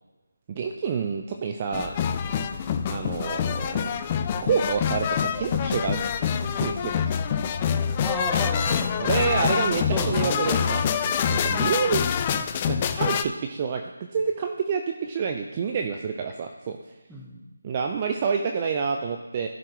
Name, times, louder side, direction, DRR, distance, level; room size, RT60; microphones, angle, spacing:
voice 1, 0.5-1.9 2.9-3.9 4.4-6.0 6.3-7.1 9.0-12.0 12.3-16.8 17.6-19.5, right 6 dB, 25° right, 4 dB, 0.6 m, -28 dB
sound 1, 1.7-13.2, left 8 dB, 25° left, 0.4 m, -26 dB
voice 2, 8.0-11.1 17.1-17.4, equal, ahead, -5 dB, 1.4 m, -34 dB
14.5 x 6.6 x 3.1 m, 1.1 s
figure-of-eight pair, 160°, 0 cm